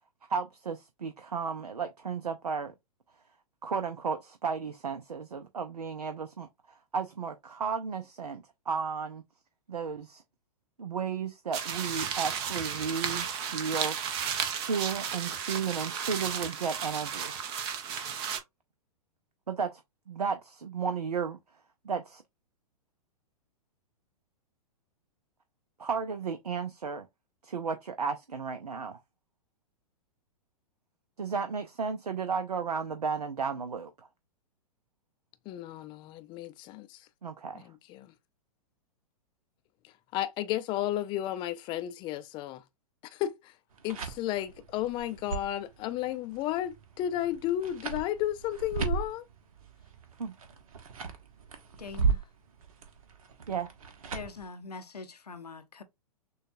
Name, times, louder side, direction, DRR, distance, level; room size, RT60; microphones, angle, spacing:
voice 1, 0.3-2.7 3.6-9.2 9.7-10.2 10.8-14.0 14.6-17.4 19.5-19.8 20.1-21.4 21.8-22.2 25.8-27.1 27.4-29.0 31.2-33.9 37.2-37.7 50.2-50.3 53.5-53.7, right 5 dB, 80° right, 0.6 m, -34 dB
sound 1, 11.5-18.4, right 7 dB, 40° right, 0.9 m, -34 dB
voice 2, 35.5-37.1 37.5-38.1 39.8-42.6 43.1-43.5 43.8-49.2, left 12 dB, 25° left, 0.4 m, -33 dB
sound 2, 43.7-54.4, right 5 dB, 65° right, 1.0 m, -36 dB
voice 3, 51.8-52.2 54.1-55.8, left 4 dB, 85° left, 0.7 m, -43 dB
6.3 x 2.3 x 2.5 m
figure-of-eight pair, 110°, 20 cm